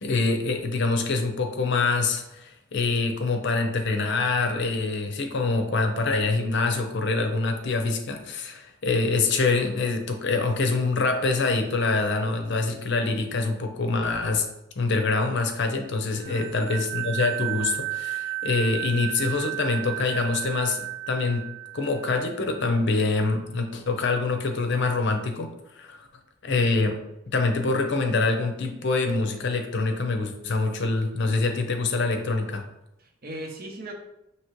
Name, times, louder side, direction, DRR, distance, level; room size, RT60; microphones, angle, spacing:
voice 1, 0.0-14.4 14.8-20.8 21.1-21.4 21.7-25.5 25.7-26.1 26.4-27.0 27.3-32.6, left 3 dB, 65° left, 5 dB, 0.6 m, -25 dB
voice 2, 16.2-16.7 33.0-33.9, right 1 dB, 50° right, 3 dB, 0.8 m, -38 dB
sound 1, 16.2-22.6, right 15 dB, 90° right, 0.3 m, -33 dB
5.8 x 2.9 x 3.0 m, 0.87 s
head